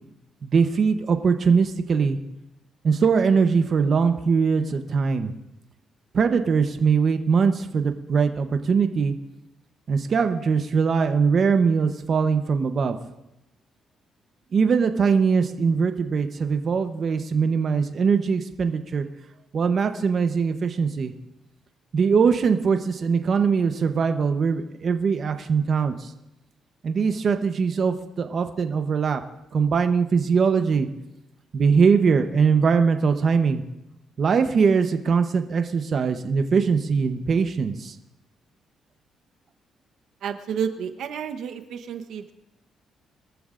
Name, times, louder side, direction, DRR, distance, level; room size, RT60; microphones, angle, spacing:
voice 1, 0.4-2.2 2.8-5.3 6.1-9.1 9.9-13.0 14.5-19.1 19.5-21.1 21.9-26.1 26.8-29.2 29.5-30.9 31.5-33.6 34.2-38.0, right 5 dB, 50° right, 7 dB, 0.9 m, -21 dB
voice 2, 40.2-42.3, right 7 dB, 75° right, 8 dB, 1.0 m, -31 dB
22.5 x 14.0 x 2.5 m, 0.91 s
cardioid pair, 90°, 0 cm